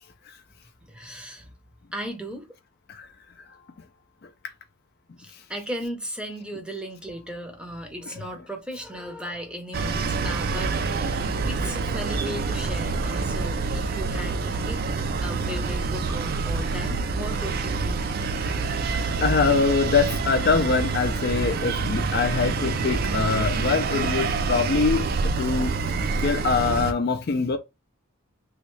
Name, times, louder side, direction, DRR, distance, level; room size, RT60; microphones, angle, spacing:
voice 1, 0.8-1.5 1.9-2.5 5.2-10.8 11.1-14.8 15.2-18.1 18.8-19.1, equal, 5° right, 0.6 m, -36 dB
sound 1, 9.7-26.9, right 4 dB, 45° right, 0.3 m, -27 dB
voice 2, 19.2-25.1 25.4-25.8 26.2-27.6, left 4 dB, 45° left, 0.4 m, -23 dB
3.1 x 2.7 x 3.1 m
head